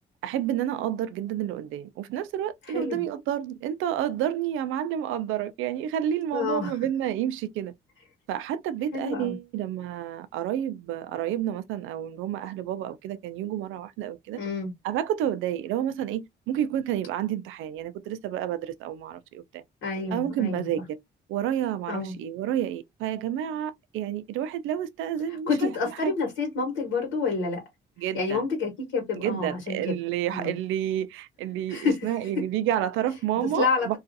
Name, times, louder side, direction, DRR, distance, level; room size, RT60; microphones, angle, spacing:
voice 1, 0.2-7.7 8.3-14.4 14.8-19.6 20.1-21.0 21.3-25.7 26.0-26.1 28.0-28.5 29.1-34.0, right 11 dB, 90° right, 0.4 m, -30 dB
voice 2, 2.7-3.0 6.3-6.7 8.9-9.4 14.4-14.7 19.8-20.7 21.9-22.1 25.5-27.6 28.1-29.9 30.3-30.6 31.7-32.0 33.5-34.0, left 4 dB, 85° left, 1.2 m, -28 dB
2.4 x 2.3 x 2.5 m
cardioid pair, 90°, 20 cm